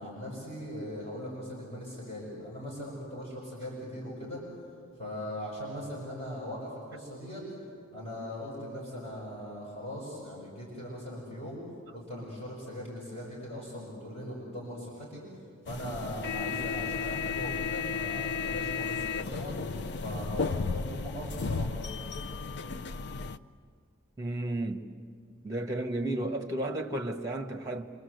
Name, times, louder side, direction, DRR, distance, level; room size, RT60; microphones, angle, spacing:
voice 1, 0.0-4.4 5.0-7.4 7.9-11.6 11.9-15.2 15.6-19.6 20.0-21.7, equal, 30° left, 6.4 m, -40 dB
sound 1, 15.7-23.4, left 5 dB, 55° left, 0.6 m, -34 dB
voice 2, 24.2-24.9 25.4-27.9, right 1 dB, 15° right, 1.6 m, -33 dB
28.0 x 25.5 x 8.1 m
head